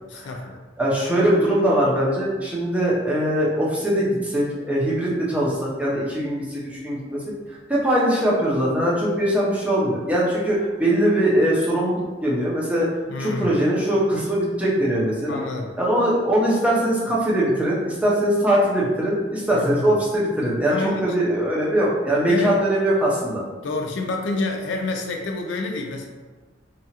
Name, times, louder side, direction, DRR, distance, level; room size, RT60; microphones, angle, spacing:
voice 1, 0.1-0.6 13.1-13.5 15.3-15.7 19.5-20.0 20.7-21.0 22.3-22.6 23.6-26.1, left 2 dB, 70° left, 2 dB, 0.4 m, -28 dB
voice 2, 0.8-7.2 7.5-12.9 13.2-15.4 15.8-20.8 21.0-23.4, right 1 dB, 10° right, -6 dB, 0.6 m, -21 dB
2.8 x 2.3 x 2.8 m, 1.3 s
head